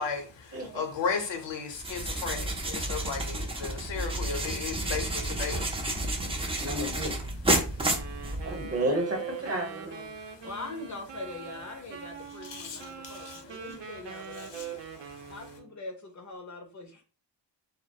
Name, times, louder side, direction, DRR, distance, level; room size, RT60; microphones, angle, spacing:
voice 1, 0.0-5.7 12.4-13.4 14.4-14.7 15.1-15.2, left 5 dB, 80° left, 0.7 m, -35 dB
voice 2, 0.5-0.8 6.1-7.2 8.4-10.2, right 1 dB, 35° right, 0.8 m, -33 dB
sound 1, 1.7-8.8, right 1 dB, 15° right, 0.3 m, -31 dB
Wind instrument woodwind instrument, 7.7-15.7, right 8 dB, 75° right, 0.6 m, -42 dB
voice 3, 10.4-14.8 15.3-17.0, left 3 dB, 45° left, 0.5 m, -42 dB
2.3 x 2.1 x 2.6 m
wide cardioid pair, 125°, 43 cm